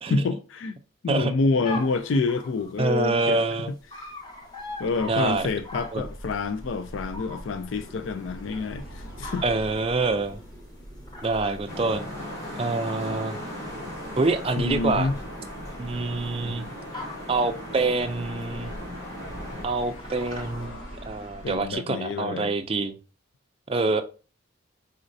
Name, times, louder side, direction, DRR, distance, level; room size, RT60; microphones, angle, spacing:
voice 1, 0.1-0.8 1.0-4.1 4.8-9.4 14.6-15.2 21.4-22.5, left 3 dB, 65° left, 0.3 m, -28 dB
sound 1, 1.6-20.7, left 2 dB, 20° left, 0.8 m, -44 dB
voice 2, 2.8-3.7 5.1-5.5 5.9-6.0 9.4-10.4 11.2-12.1 12.6-13.4 14.2-15.1 15.8-16.7 17.3-18.7 19.6-23.0 23.7-24.0, right 3 dB, 30° right, 0.4 m, -26 dB
sound 2, 4.2-21.8, equal, 90° left, 1.8 m, -44 dB
sound 3, 11.7-19.6, equal, 50° left, 2.3 m, -37 dB
4.2 x 3.9 x 2.6 m
head